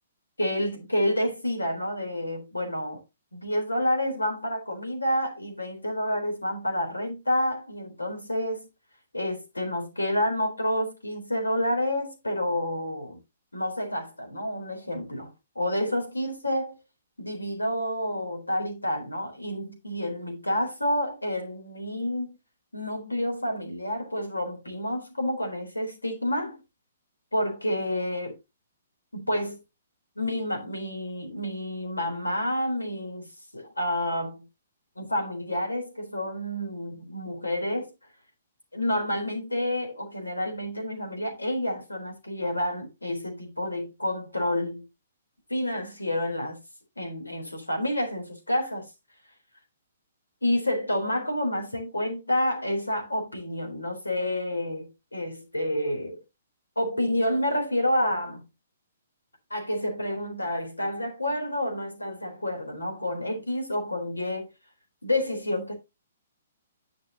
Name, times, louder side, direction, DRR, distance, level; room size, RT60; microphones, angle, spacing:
voice 1, 0.4-3.0 3.3-8.7 9.1-13.2 13.5-16.7 17.2-22.4 22.7-26.6 27.3-28.4 29.1-29.6 30.2-34.5 35.0-37.9 38.7-44.9 45.5-46.6 47.0-48.9 50.4-56.2 56.8-58.5 59.5-64.5 65.0-65.7, left 1 dB, 85° left, 3.8 m, -29 dB
10.5 x 6.6 x 2.9 m
figure-of-eight pair, 125°, 0 cm